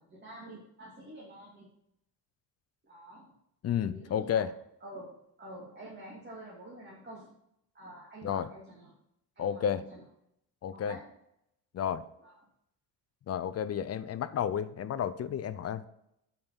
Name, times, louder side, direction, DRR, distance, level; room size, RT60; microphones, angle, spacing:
voice 1, 0.0-1.7 2.8-3.3 3.8-4.4 4.8-7.4 7.7-8.9 9.4-10.0 10.7-11.1 12.2-12.3, right 1 dB, 25° right, -5 dB, 2.6 m, -48 dB
voice 2, 3.6-4.5 8.2-8.5 9.4-9.8 10.6-11.0 11.7-12.0 13.3-15.9, left 9 dB, 40° left, 13 dB, 0.6 m, -31 dB
9.5 x 5.4 x 5.7 m, 0.78 s
cardioid pair, 115°, 40 cm